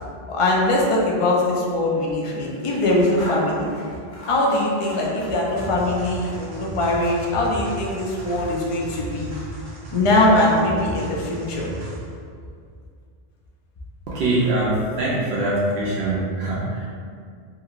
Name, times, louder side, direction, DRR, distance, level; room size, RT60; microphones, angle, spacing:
voice 1, 0.3-3.7 4.3-9.3 9.9-11.7, left 1 dB, 55° left, -2 dB, 0.4 m, -21 dB
Scissors, 2.1-6.6 6.9-9.5, equal, 35° left, 0.8 m, -42 dB
sound 1, 5.6-12.2, right 2 dB, 45° right, 0.6 m, -35 dB
voice 2, 14.1-16.9, right 2 dB, 75° right, -7 dB, 0.8 m, -23 dB
2.8 x 2.7 x 2.4 m, 2.2 s
omnidirectional pair, 1.0 m